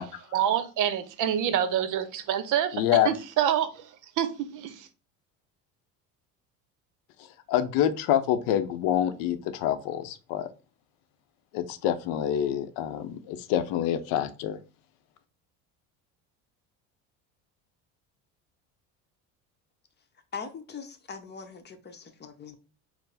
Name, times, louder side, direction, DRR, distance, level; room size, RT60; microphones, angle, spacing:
voice 1, 0.3-4.9, right 10 dB, 55° right, 0.7 m, -27 dB
voice 2, 2.7-3.1 7.2-10.5 11.5-14.6, left 10 dB, 70° left, 0.6 m, -27 dB
voice 3, 20.3-22.6, left 5 dB, 30° left, 0.8 m, -41 dB
4.6 x 2.0 x 4.0 m
supercardioid pair, 95°, 36 cm